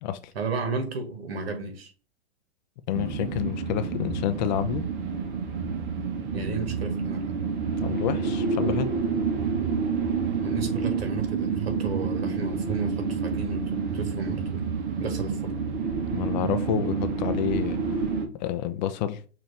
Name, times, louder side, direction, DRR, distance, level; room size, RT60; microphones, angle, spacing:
voice 1, 0.3-1.9 6.3-7.4 10.4-14.6 15.0-15.5, right 4 dB, 65° right, 1.5 m, -33 dB
voice 2, 2.9-4.8 7.8-8.9 16.1-18.0 18.3-19.2, left 11 dB, 45° left, 0.5 m, -29 dB
sound 1, 2.9-18.3, right 5 dB, 45° right, 0.9 m, -28 dB
5.9 x 2.6 x 3.2 m
hypercardioid pair, 105°, 33 cm